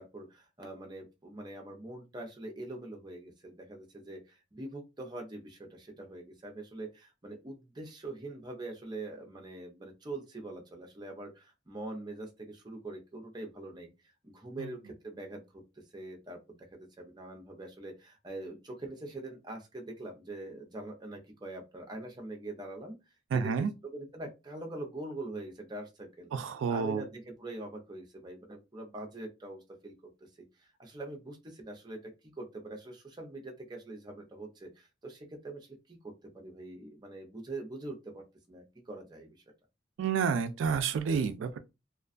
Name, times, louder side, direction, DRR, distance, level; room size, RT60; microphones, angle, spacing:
voice 1, 0.0-13.9 14.2-15.6 15.9-23.0 23.3-26.3 26.7-29.9 30.6-39.4, right 2 dB, 20° right, 0.6 m, -43 dB
voice 2, 23.3-23.7 26.3-27.0 40.0-41.6, right 6 dB, 90° right, 0.3 m, -30 dB
2.4 x 2.2 x 2.4 m
head